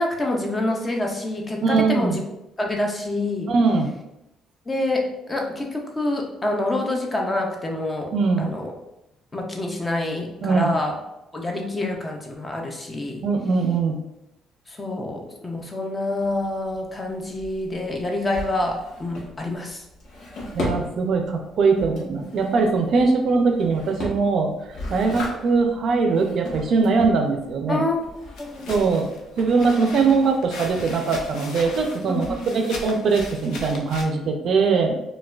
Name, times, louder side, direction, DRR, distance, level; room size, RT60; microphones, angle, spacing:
voice 1, 0.0-2.2 2.6-3.5 4.7-8.7 9.3-11.0 11.3-13.2 14.7-19.8 27.7-28.0 28.4-28.7 32.1-32.6, left 2 dB, 15° left, 1 dB, 0.4 m, -27 dB
voice 2, 1.6-2.2 3.5-3.9 8.1-8.5 10.4-10.7 13.2-14.0 20.5-24.5 24.9-27.8 28.7-29.1 29.4-32.3 32.5-35.0, right 4 dB, 45° right, 4 dB, 0.4 m, -21 dB
Drawer open or close, 16.2-31.4, left 1 dB, 60° left, 1.1 m, -37 dB
sound 1, 28.4-34.0, left 3 dB, 75° left, 0.5 m, -38 dB
4.5 x 2.2 x 2.3 m, 0.89 s
cardioid pair, 170°, 0 cm